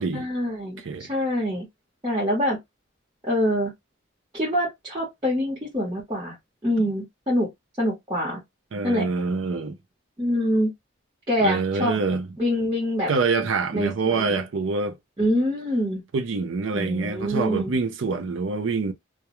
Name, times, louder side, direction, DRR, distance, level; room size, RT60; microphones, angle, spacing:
voice 1, 0.1-1.7 2.0-2.6 3.3-3.7 4.3-6.3 6.6-7.5 7.8-8.4 8.8-9.1 10.2-10.7 11.3-12.0 12.4-13.1 13.7-14.4 15.2-16.0 16.7-17.8, equal, 20° right, 1.0 m, -25 dB
voice 2, 8.7-9.8 11.4-12.3 13.1-15.0 16.1-18.9, right 4 dB, 75° right, 0.5 m, -25 dB
2.3 x 2.2 x 2.9 m
head